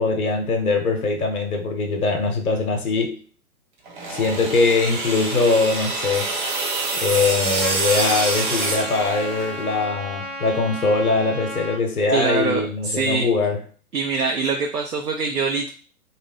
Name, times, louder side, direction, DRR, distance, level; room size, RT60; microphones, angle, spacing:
voice 1, 0.0-3.2 4.1-6.3 6.9-13.6, left 3 dB, 75° left, 0.9 m, -22 dB
sound 1, 3.9-9.7, right 3 dB, 35° right, 0.6 m, -26 dB
Trumpet, 7.6-11.8, left 1 dB, 25° left, 0.7 m, -33 dB
voice 2, 12.1-13.3 13.9-15.7, right 4 dB, 90° right, 0.7 m, -24 dB
2.6 x 2.1 x 3.4 m
figure-of-eight pair, 125°, 45 cm